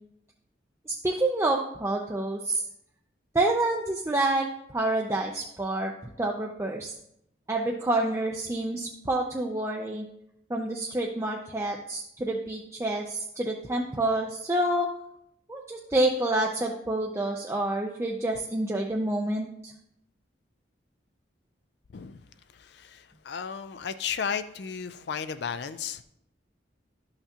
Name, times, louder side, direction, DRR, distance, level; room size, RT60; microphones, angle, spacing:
voice 1, 0.9-2.6 3.3-5.9 6.2-6.9 7.5-10.1 10.5-14.9 15.5-19.7, right 2 dB, 15° right, -1 dB, 0.5 m, -28 dB
voice 2, 22.5-26.0, left 7 dB, 60° left, 11 dB, 0.4 m, -34 dB
12.0 x 5.7 x 2.8 m, 0.76 s
head